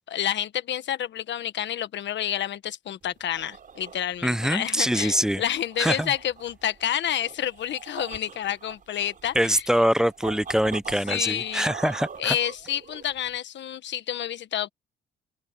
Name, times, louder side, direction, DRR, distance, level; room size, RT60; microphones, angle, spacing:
voice 1, 0.0-9.6 11.1-11.7 12.2-14.7, left 11 dB, 65° left, 1.4 m, -29 dB
sound 1, 3.0-13.4, right 6 dB, 45° right, 4.9 m, -43 dB
voice 2, 4.2-5.4 5.8-6.1 9.4-12.4, equal, 5° right, 0.5 m, -24 dB
open air
cardioid pair, 90°, 20 cm